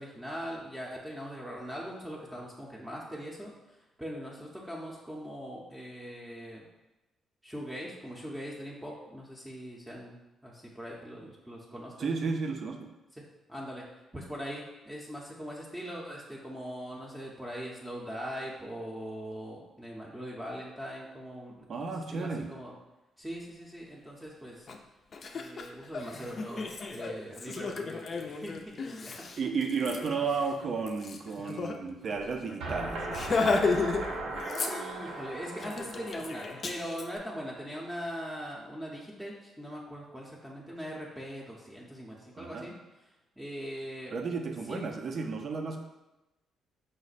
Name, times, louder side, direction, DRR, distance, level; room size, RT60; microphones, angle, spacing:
voice 1, 0.0-6.6 7.4-10.2 10.4-12.0 13.2-13.3 13.5-13.8 14.1-21.5 22.1-22.7 23.2-24.7 25.3-29.3 34.7-42.7 43.4-44.1 44.7-44.9, equal, 10° right, -4 dB, 0.6 m, -41 dB
voice 2, 12.0-12.9 21.7-22.5 29.4-33.1 42.4-42.7 44.1-45.8, right 4 dB, 50° right, 4 dB, 0.5 m, -33 dB
Laughter, 24.7-24.8 25.1-31.8 32.1-32.2 32.5-32.7 33.1-34.0 34.3-35.1 35.6-37.0, left 4 dB, 45° left, 0.4 m, -33 dB
sound 1, 32.6-37.5, right 2 dB, 80° right, 0.8 m, -38 dB
5.0 x 2.1 x 4.0 m, 1.0 s
cardioid pair, 90°, 0 cm